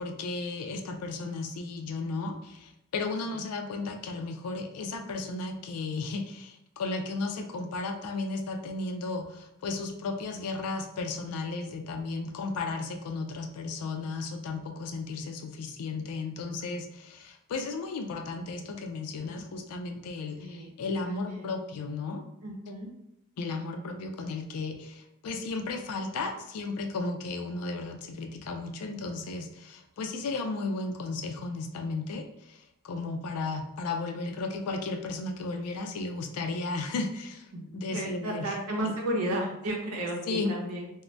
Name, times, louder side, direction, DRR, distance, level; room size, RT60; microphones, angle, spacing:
voice 1, 0.0-22.2 23.4-37.5 37.7-38.6 38.8-38.9 40.3-40.5, left 3 dB, 85° left, 5 dB, 0.4 m, -34 dB
voice 2, 20.4-20.7 21.1-21.6 22.4-22.9 37.5-37.6 37.9-40.9, right 1 dB, 80° right, 0 dB, 0.7 m, -33 dB
2.6 x 2.1 x 3.1 m, 0.80 s
head